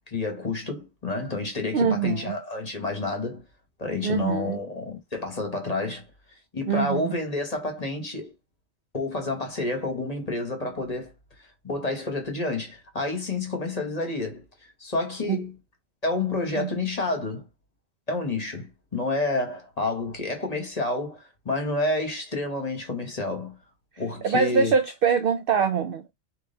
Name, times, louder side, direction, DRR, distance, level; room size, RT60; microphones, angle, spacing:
voice 1, 0.1-3.4 3.8-6.1 6.5-8.3 8.9-11.1 11.6-15.5 16.0-17.4 18.1-23.6 24.0-24.7, left 2 dB, 30° left, 1.2 m, -29 dB
voice 2, 1.7-2.4 4.0-4.6 6.7-7.1 15.3-15.4 16.6-16.7 24.2-26.1, right 6 dB, 65° right, 0.6 m, -24 dB
3.8 x 3.1 x 3.9 m
omnidirectional pair, 1.4 m